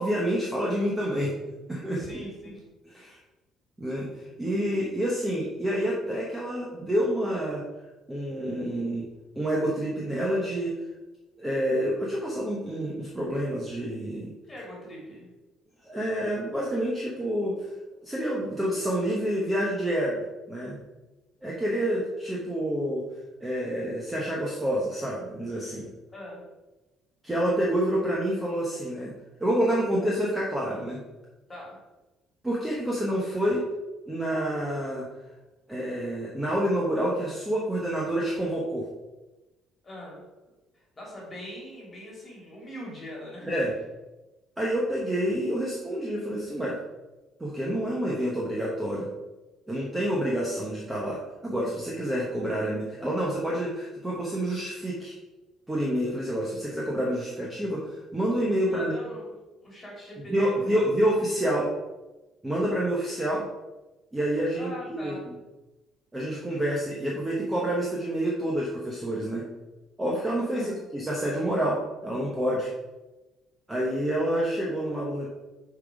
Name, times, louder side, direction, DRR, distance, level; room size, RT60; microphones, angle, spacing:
voice 1, 0.0-1.4 1.7-2.0 2.9-3.2 3.8-4.1 4.4-7.6 8.1-9.1 9.4-10.8 11.4-14.3 15.9-17.5 18.0-20.8 21.4-23.0 23.4-25.9 27.2-29.1 29.4-31.0 32.4-33.6 34.1-35.1 35.7-38.9 43.5-43.7 44.6-46.8 47.4-49.1 49.7-55.2 55.7-58.9 60.3-61.7 62.4-63.5 64.1-65.1 66.1-69.5 70.0-72.7 73.7-75.3, equal, 10° right, -4 dB, 0.8 m, -28 dB
voice 2, 1.9-2.6 14.5-15.3 26.1-26.4 31.5-31.8 39.8-40.2 40.7-43.6 58.7-59.3 59.6-60.8 64.5-65.2 70.5-70.8, equal, 15° left, -3 dB, 2.3 m, -41 dB
6.6 x 3.9 x 4.7 m, 1.1 s
cardioid pair, 180°, 0 cm